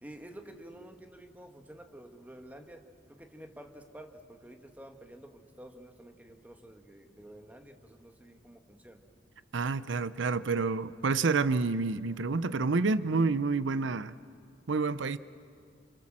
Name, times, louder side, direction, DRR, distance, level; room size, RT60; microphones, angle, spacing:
voice 1, 0.0-9.0, right 1 dB, 10° right, 5 dB, 1.8 m, -50 dB
voice 2, 9.5-14.2 14.7-15.2, right 4 dB, 85° right, 15 dB, 0.6 m, -28 dB
29.0 x 27.0 x 7.6 m, 2.4 s
head